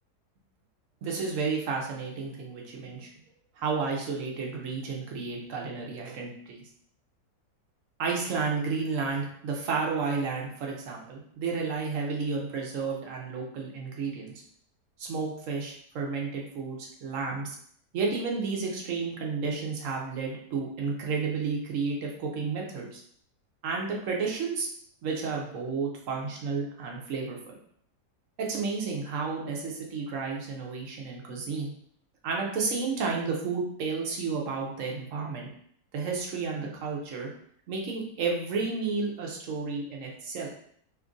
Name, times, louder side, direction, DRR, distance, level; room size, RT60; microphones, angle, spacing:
voice 1, 1.0-3.1 3.6-6.6 8.0-14.3 15.0-17.6 17.9-23.0 23.6-24.7 25.0-27.4 28.4-31.7 32.2-35.5 35.9-37.3 37.7-40.5, right 4 dB, 65° right, -1 dB, 0.9 m, -32 dB
2.8 x 2.4 x 3.7 m, 0.64 s
omnidirectional pair, 1.8 m